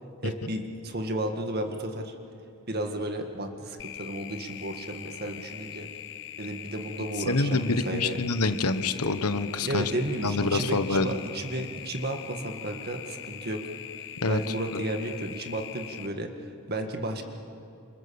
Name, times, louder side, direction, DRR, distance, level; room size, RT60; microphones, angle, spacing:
voice 1, 0.2-2.1 2.7-5.9 6.4-8.2 9.7-13.6 14.0-16.3 16.7-17.2, right 1 dB, 45° right, 4 dB, 1.9 m, -33 dB
sound 1, 3.8-16.1, left 12 dB, 55° left, 0.6 m, -42 dB
voice 2, 7.3-11.1 14.2-14.4, left 3 dB, 90° left, 10 dB, 1.3 m, -26 dB
28.0 x 27.0 x 7.1 m, 2.6 s
head